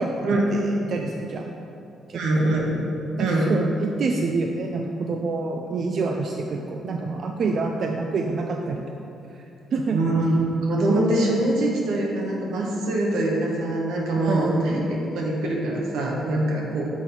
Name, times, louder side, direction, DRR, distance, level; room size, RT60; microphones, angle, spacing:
voice 1, 0.5-1.5 2.1-2.2 3.1-8.9 9.3-9.4 9.7-10.0 14.2-14.7, right 3 dB, 55° right, 2 dB, 0.3 m, -27 dB
voice 2, 2.1-2.8 3.2-3.5 9.9-16.9, right 1 dB, 90° right, -2 dB, 1.0 m, -23 dB
6.1 x 3.9 x 4.3 m, 2.8 s
cardioid pair, 90°, 0 cm